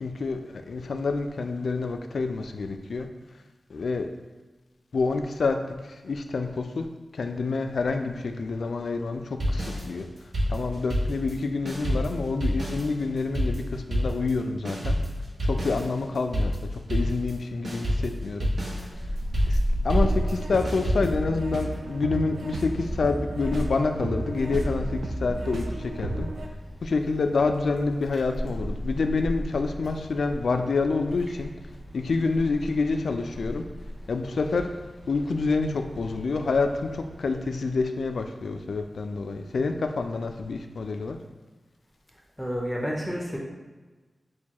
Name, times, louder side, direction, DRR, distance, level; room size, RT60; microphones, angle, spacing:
voice 1, 0.0-3.1 3.7-4.1 4.9-5.6 6.0-6.8 7.2-10.1 10.5-15.0 15.5-16.5 16.9-18.5 19.5-19.6 19.8-26.3 26.8-31.5 31.9-33.6 34.1-34.7 35.1-41.2, left 3 dB, 85° left, 6 dB, 0.3 m, -27 dB
sound 1, 9.4-11.4 11.7-17.4 17.6-21.1, equal, 70° right, 1.1 m, -28 dB
Wind, 18.9-37.4, equal, 25° right, 1.4 m, -35 dB
sound 2, 20.0-26.5, right 2 dB, 90° right, 0.4 m, -33 dB
voice 2, 42.4-43.4, equal, 5° left, -2 dB, 0.5 m, -30 dB
6.3 x 2.3 x 2.9 m, 1.3 s
wide cardioid pair, 125°, 0 cm